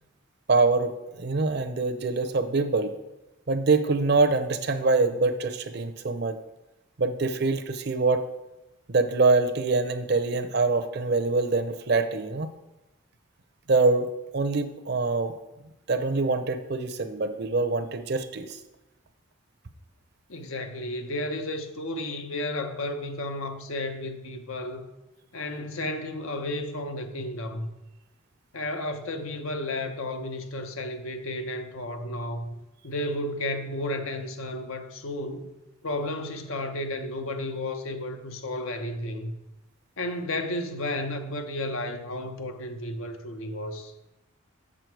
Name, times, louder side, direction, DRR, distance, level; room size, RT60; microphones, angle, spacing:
voice 1, 0.5-2.9 3.5-6.4 7.0-8.2 8.9-12.5 13.7-15.3 15.9-18.6, right 3 dB, 50° right, 0.6 m, -24 dB
voice 2, 20.3-24.8 25.3-27.7 28.5-32.5 32.8-35.5 35.8-39.3 40.0-43.9, left 1 dB, 75° left, 0.8 m, -32 dB
7.3 x 6.3 x 4.6 m
head